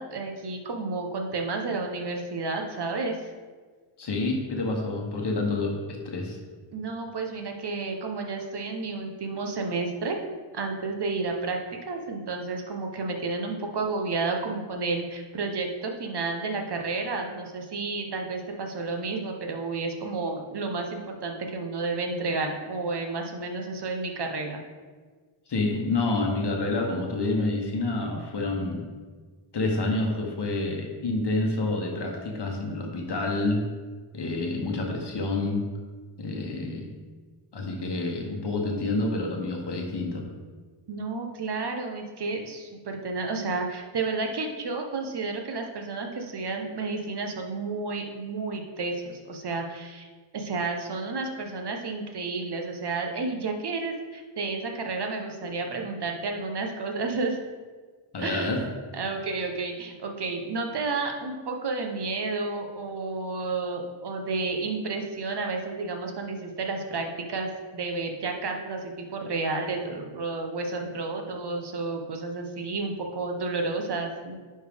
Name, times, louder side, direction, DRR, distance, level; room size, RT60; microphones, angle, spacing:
voice 1, 0.0-3.2 6.7-10.2 10.5-11.6 11.9-24.6 40.9-50.1 50.3-57.4 58.2-74.3, right 3 dB, 55° right, 3 dB, 0.9 m, -31 dB
voice 2, 4.0-6.4 25.5-28.8 29.5-33.6 34.1-35.6 36.2-36.9 37.5-40.3 58.1-58.6, left 2 dB, 55° left, 1 dB, 1.0 m, -28 dB
10.0 x 4.4 x 3.5 m, 1.5 s
wide cardioid pair, 125°, 49 cm